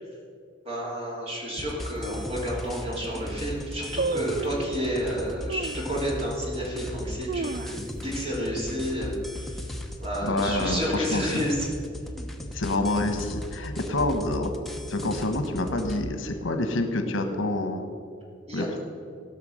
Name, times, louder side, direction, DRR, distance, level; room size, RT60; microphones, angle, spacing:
voice 1, 0.6-9.6 10.0-11.7 18.5-18.8, equal, 30° right, -4 dB, 3.2 m, -30 dB
sound 1, 1.6-16.0, left 1 dB, ahead, 0.8 m, -37 dB
sound 2, 2.0-2.1 2.7-2.8 3.0-3.4 4.0-4.7 5.5-5.9 6.4-6.5 7.0-8.2 8.5-8.6 8.9-9.3 9.7-10.0 10.6-11.4 11.7-11.8, right 4 dB, 50° right, 0.3 m, -32 dB
voice 2, 10.2-11.4 12.5-14.5 14.9-17.9 18.5-18.8, left 2 dB, 80° left, 6 dB, 1.2 m, -27 dB
17.5 x 5.9 x 6.4 m, 2.2 s
head